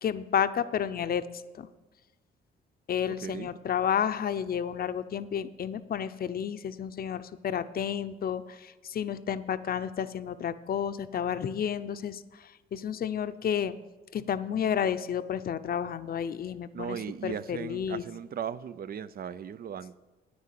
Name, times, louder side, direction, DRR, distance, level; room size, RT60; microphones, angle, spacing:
voice 1, 0.0-1.2 1.6-1.7 2.9-13.8 14.1-18.0, left 8 dB, 50° left, 0.7 m, -31 dB
voice 2, 3.1-3.5 16.7-20.0, right 8 dB, 50° right, 0.5 m, -37 dB
9.7 x 9.6 x 7.5 m
cardioid pair, 90°, 20 cm